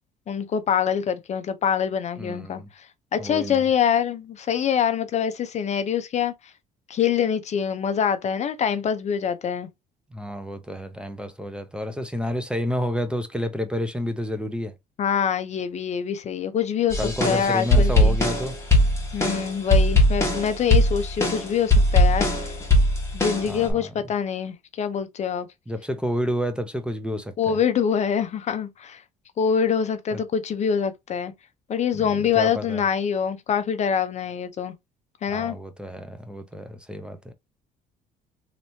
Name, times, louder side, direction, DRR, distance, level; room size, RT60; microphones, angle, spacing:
voice 1, 0.3-2.6 3.1-6.3 6.9-9.7 15.0-18.2 19.1-22.5 23.1-25.5 27.4-29.0 29.4-31.3 31.7-34.7 35.2-35.6, left 7 dB, 40° left, 0.5 m, -25 dB
voice 2, 2.2-2.7 3.2-3.6 10.1-14.7 17.0-18.5 23.4-23.9 25.7-27.6 30.1-30.2 31.9-32.8 35.3-37.3, equal, 5° right, 0.5 m, -30 dB
sound 1, 16.9-23.7, left 1 dB, 15° left, 1.3 m, -20 dB
3.2 x 2.9 x 2.7 m
cardioid pair, 110°, 17 cm